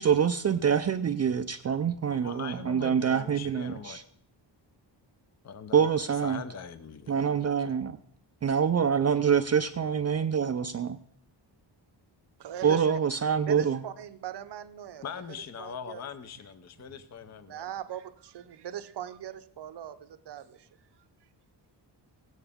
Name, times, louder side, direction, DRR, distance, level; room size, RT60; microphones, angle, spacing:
voice 1, 0.0-4.0 5.7-6.4 7.1-8.0 8.4-11.0 12.6-13.8, right 7 dB, 35° right, 0.4 m, -26 dB
voice 2, 2.1-4.0 5.4-7.7 15.0-17.7, left 7 dB, 35° left, 0.6 m, -42 dB
voice 3, 12.4-13.0 13.5-16.0 16.9-17.0 17.4-21.0, right 10 dB, 65° right, 0.8 m, -41 dB
16.0 x 9.0 x 3.6 m
wide cardioid pair, 130°, 45 cm